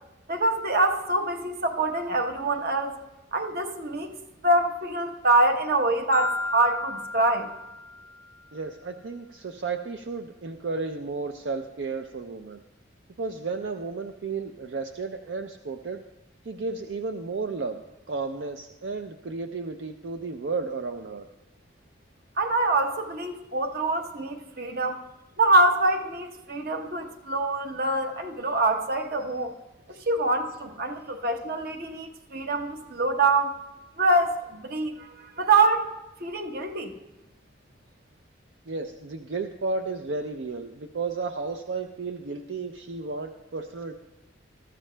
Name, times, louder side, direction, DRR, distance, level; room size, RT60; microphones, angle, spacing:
voice 1, 0.3-3.0 3.3-4.2 4.4-7.5 22.4-25.0 25.4-29.5 29.9-33.6 34.0-35.9 36.2-37.0, right 2 dB, 55° right, 5 dB, 0.9 m, -25 dB
Marimba xylophone, 6.1-8.3, left 3 dB, 20° left, 0.3 m, -33 dB
voice 2, 8.5-12.6 13.2-16.0 16.5-21.3 29.9-30.0 38.7-44.0, right 4 dB, 70° right, 5 dB, 0.5 m, -33 dB
21.0 x 13.5 x 2.2 m, 1.0 s
head